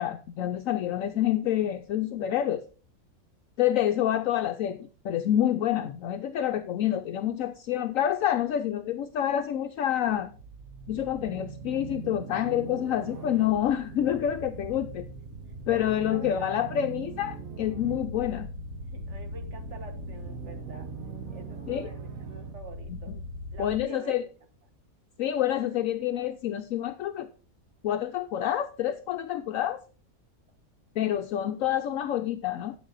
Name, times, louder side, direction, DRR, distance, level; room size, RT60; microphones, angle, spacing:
voice 1, 0.0-2.6 3.6-10.3 10.9-15.1 15.7-18.5 21.7-21.9 22.9-23.2 23.6-24.2 25.2-27.3 27.8-29.8 31.0-32.8, left 11 dB, 70° left, 1.0 m, -28 dB
sound 1, 10.1-23.8, right 3 dB, 70° right, 1.8 m, -40 dB
voice 2, 15.7-16.9 18.9-20.9 21.3-23.1 23.5-24.3, right 2 dB, 55° right, 1.7 m, -47 dB
9.4 x 8.7 x 3.9 m
omnidirectional pair, 1.5 m